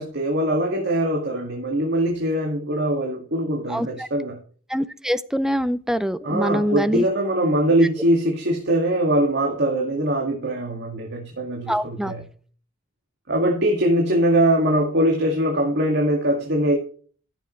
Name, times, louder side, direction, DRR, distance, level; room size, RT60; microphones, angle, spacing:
voice 1, 0.0-4.4 6.2-12.3 13.3-16.7, right 1 dB, 60° right, 2.2 m, -22 dB
voice 2, 3.7-4.1 4.7-7.0 11.7-12.1, equal, 5° right, 0.5 m, -24 dB
14.5 x 7.5 x 3.3 m
head